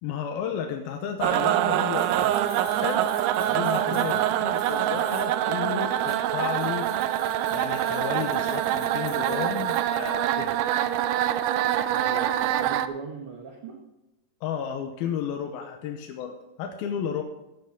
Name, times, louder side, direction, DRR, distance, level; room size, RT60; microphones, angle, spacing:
voice 1, 0.0-2.3 2.7-3.1 3.4-6.9 7.5-10.6 14.4-17.2, left 8 dB, 85° left, 3 dB, 2.8 m, -33 dB
sound 1, 1.2-12.9, right 11 dB, 80° right, 1.9 m, -25 dB
sound 2, 1.9-5.4 5.9-10.1, left 5 dB, 50° left, 2.7 m, -48 dB
sound 3, 2.7-2.8 3.4-4.0 4.7-5.2 5.8-6.7 7.4-8.6, right 3 dB, 35° right, 2.0 m, -48 dB
voice 2, 3.8-4.2 11.9-13.8, right 5 dB, 65° right, 2 dB, 1.4 m, -39 dB
14.5 x 10.5 x 3.7 m, 0.96 s
omnidirectional pair, 4.2 m